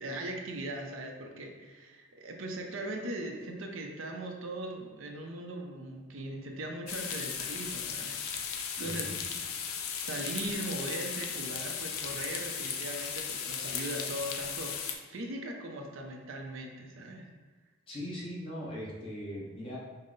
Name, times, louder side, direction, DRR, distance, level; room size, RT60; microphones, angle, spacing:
voice 1, 0.0-8.2 8.8-9.1 10.0-17.3, right 1 dB, 70° right, 2 dB, 0.6 m, -39 dB
sound 1, 6.9-14.9, left 7 dB, 90° left, 0.5 m, -36 dB
voice 2, 8.8-9.2 9.7-9.8 17.9-19.8, equal, 25° left, -6 dB, 1.0 m, -40 dB
5.4 x 2.1 x 3.9 m, 1.3 s
head